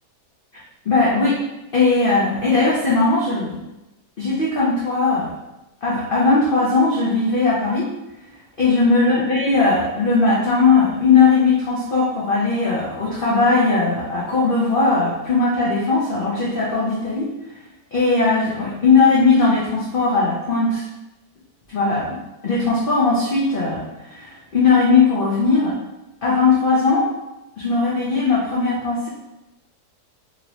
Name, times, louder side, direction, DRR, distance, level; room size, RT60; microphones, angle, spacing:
voice 1, 0.9-1.4 1.7-3.6 4.2-5.3 5.8-7.9 8.6-17.3 17.9-20.8 21.7-22.2 22.4-25.7 26.2-27.1 27.6-29.1, left 4 dB, 70° left, -6 dB, 0.5 m, -18 dB
3.0 x 2.8 x 2.8 m, 0.95 s
omnidirectional pair, 1.8 m